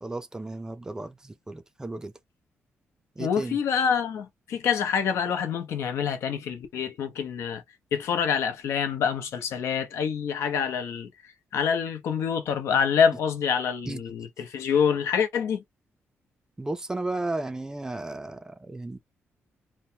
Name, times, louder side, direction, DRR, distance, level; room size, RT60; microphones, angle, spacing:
voice 1, 0.0-2.1 3.2-3.6 13.8-14.0 16.6-19.0, right 2 dB, 15° right, 0.4 m, -34 dB
voice 2, 3.2-7.6 7.9-11.1 11.5-15.6, left 7 dB, 80° left, 0.7 m, -26 dB
3.0 x 2.1 x 2.7 m
cardioid pair, 125°, 5 cm